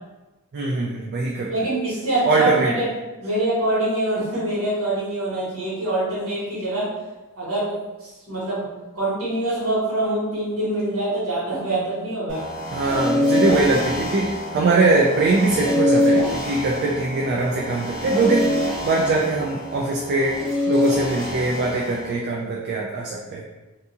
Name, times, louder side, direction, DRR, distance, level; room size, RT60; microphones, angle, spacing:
voice 1, 0.5-1.7 2.3-2.7 12.7-18.5 18.8-20.4 20.7-23.4, right 3 dB, 50° right, -2 dB, 0.3 m, -22 dB
voice 2, 1.5-2.9 3.2-6.9 7.3-8.7 8.9-12.5, right 1 dB, 65° right, -8 dB, 1.4 m, -25 dB
sound 1, 12.3-22.1, left 1 dB, 30° right, 1.1 m, -25 dB
2.6 x 2.3 x 2.7 m, 1.1 s
head